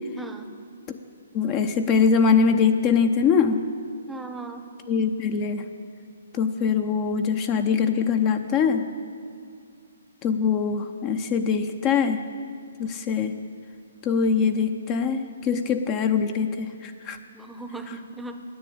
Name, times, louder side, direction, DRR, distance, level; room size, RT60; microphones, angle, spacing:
voice 1, 0.2-0.5 4.1-4.7 17.3-18.4, right 2 dB, 5° right, 6 dB, 0.8 m, -37 dB
voice 2, 1.3-3.6 4.9-5.7 6.3-8.9 10.2-12.2 12.8-13.3 14.0-17.2, left 6 dB, 30° left, 7 dB, 0.6 m, -23 dB
10.5 x 8.5 x 8.7 m, 2.3 s
hypercardioid pair, 140°, 0 cm